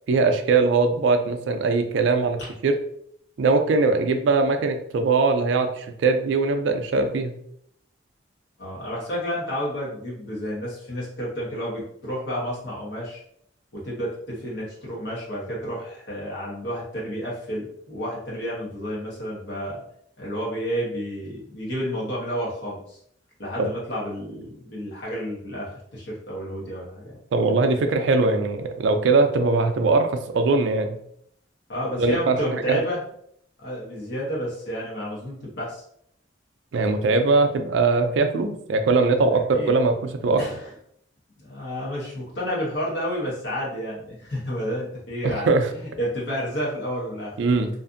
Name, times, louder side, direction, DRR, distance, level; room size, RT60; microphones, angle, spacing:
voice 1, 0.1-2.7 3.4-7.4 23.6-23.7 27.3-31.0 32.0-32.8 36.7-40.4 45.2-45.7 47.4-47.7, right 3 dB, 70° right, 6 dB, 0.3 m, -21 dB
voice 2, 8.6-13.2 13.7-19.8 20.2-23.0 23.4-27.2 31.7-33.0 33.6-35.8 39.5-39.7 40.4-40.7 41.4-47.3, equal, 60° left, -5 dB, 0.9 m, -30 dB
2.5 x 2.4 x 2.5 m, 0.68 s
head